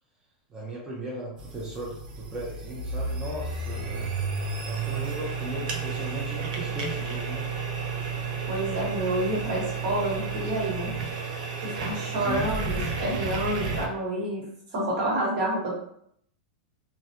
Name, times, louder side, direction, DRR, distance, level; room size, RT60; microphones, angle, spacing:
voice 1, 0.5-4.1 4.7-7.5 12.2-12.5, right 1 dB, 15° right, -5 dB, 0.6 m, -37 dB
sound 1, 1.4-13.9, right 4 dB, 75° right, 0.6 m, -32 dB
voice 2, 8.5-10.9 11.6-14.4 14.7-15.7, right 1 dB, 55° right, -4 dB, 1.3 m, -28 dB
2.3 x 2.2 x 2.8 m, 0.69 s
supercardioid pair, 135°, 4 cm